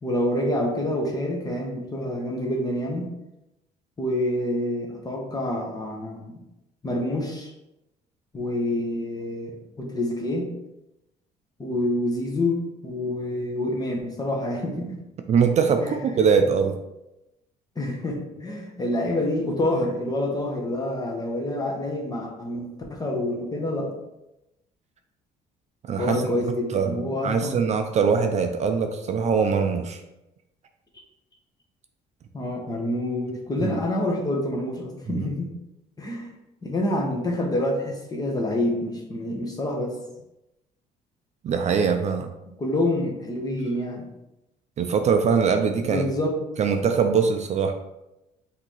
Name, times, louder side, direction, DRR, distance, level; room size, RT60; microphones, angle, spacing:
voice 1, 0.0-3.1 4.0-6.4 6.8-7.5 8.3-10.5 11.6-14.9 15.8-16.0 17.8-23.9 26.0-27.6 32.3-35.5 36.0-36.3 36.6-40.0 42.6-44.1 45.8-46.4, left 1 dB, 25° left, 1 dB, 1.0 m, -27 dB
voice 2, 15.3-16.7 25.9-26.2 26.7-30.0 35.1-35.3 41.4-42.3 44.8-46.1 46.6-47.7, right 6 dB, 40° right, 6 dB, 0.4 m, -22 dB
5.8 x 2.8 x 3.1 m, 0.93 s
cardioid pair, 110°, 17 cm